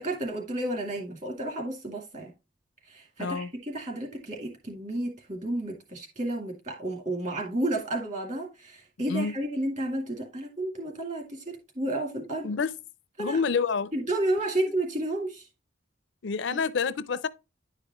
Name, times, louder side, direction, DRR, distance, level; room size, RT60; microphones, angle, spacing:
voice 1, 0.0-2.3 2.9-11.4 11.8-12.5 13.2-13.4 13.9-15.4, right 1 dB, 40° right, 2.2 m, -31 dB
voice 2, 13.2-13.9 16.2-17.3, left 5 dB, 70° left, 0.5 m, -28 dB
10.5 x 5.0 x 3.0 m
head